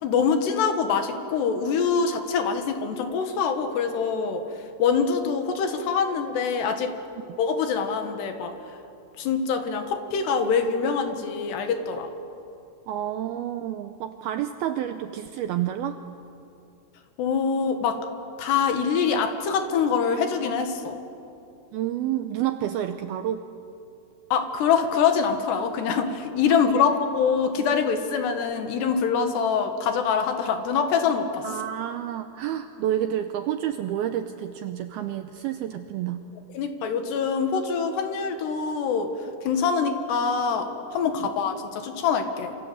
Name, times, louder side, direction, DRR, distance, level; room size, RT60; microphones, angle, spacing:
voice 1, 0.0-4.4 4.8-7.0 7.4-8.6 9.2-12.1 17.2-18.0 18.4-21.0 24.3-31.5 36.5-39.1 39.4-42.6, left 6 dB, 70° left, 6 dB, 3.6 m, -24 dB
voice 2, 12.9-16.0 21.7-23.4 26.7-26.9 31.4-36.3 41.2-41.3, right 11 dB, 80° right, 8 dB, 2.2 m, -29 dB
27.0 x 26.5 x 8.0 m, 2.7 s
omnidirectional pair, 5.2 m